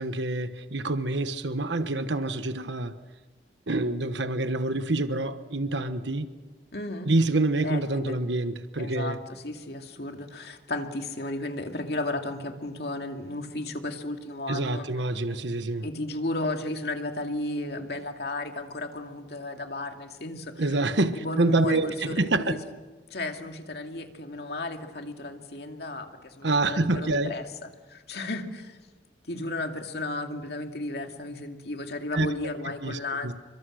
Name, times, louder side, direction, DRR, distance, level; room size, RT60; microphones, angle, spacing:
voice 1, 0.0-2.9 3.7-6.3 7.0-9.2 14.5-15.9 20.6-22.5 26.4-27.4 32.1-32.3 32.8-33.3, right 2 dB, 80° right, 1.2 m, -27 dB
voice 2, 6.7-7.1 7.6-8.2 8.8-14.9 15.8-20.7 21.1-22.6 23.1-27.4 27.9-28.8 29.2-33.3, left 2 dB, 65° left, 2.3 m, -34 dB
29.5 x 24.0 x 6.5 m
head